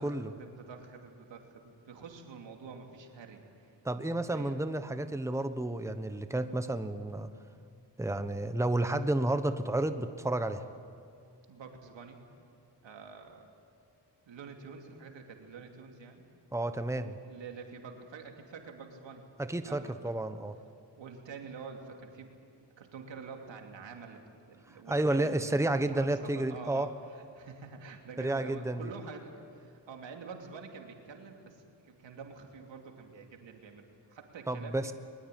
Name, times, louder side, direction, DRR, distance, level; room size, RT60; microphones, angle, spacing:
voice 1, 0.0-3.8 4.1-4.6 11.5-12.2 12.8-13.5 14.3-16.2 17.2-20.2 21.0-22.3 22.8-34.9, right 5 dB, 85° right, 3 dB, 3.0 m, -47 dB
voice 2, 3.8-7.3 8.0-10.6 16.5-17.2 19.4-20.6 24.9-26.9 28.2-28.8 34.5-34.9, right 1 dB, 5° right, 9 dB, 1.2 m, -31 dB
22.0 x 21.0 x 9.4 m, 2.4 s
cardioid pair, 65°, 43 cm